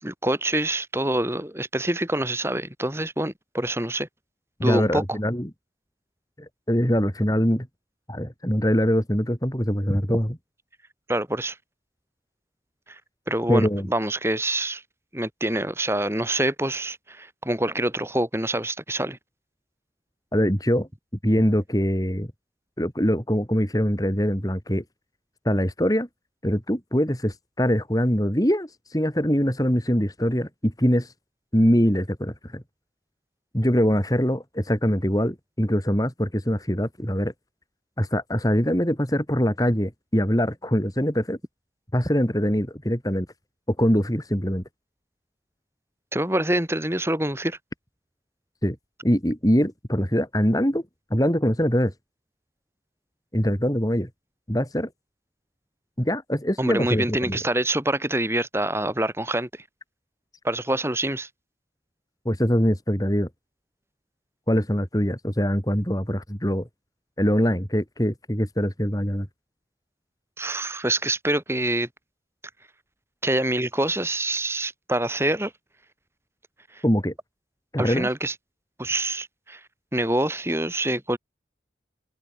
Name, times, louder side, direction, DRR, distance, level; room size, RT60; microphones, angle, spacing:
voice 1, 0.0-4.1 4.6-5.0 9.9-10.0 11.1-11.6 12.9-13.0 13.3-14.8 15.1-19.2 46.1-47.6 56.6-59.5 60.4-61.3 70.4-71.9 73.2-75.5 76.7-76.8 77.8-78.3 78.8-79.6 79.9-81.2, right 1 dB, 15° right, 7.0 m, -26 dB
voice 2, 4.6-5.5 6.7-7.7 8.1-10.4 13.5-13.9 20.3-20.9 21.2-22.3 22.8-24.8 25.4-26.1 26.4-31.1 31.5-32.6 33.5-37.3 38.0-41.4 41.9-43.3 43.7-44.6 48.6-48.8 49.0-50.8 51.1-51.9 53.3-54.1 54.5-54.9 56.0-57.4 62.2-63.3 64.5-66.7 67.2-69.3 76.8-77.1 77.7-78.1, equal, 20° left, 4.7 m, -23 dB
head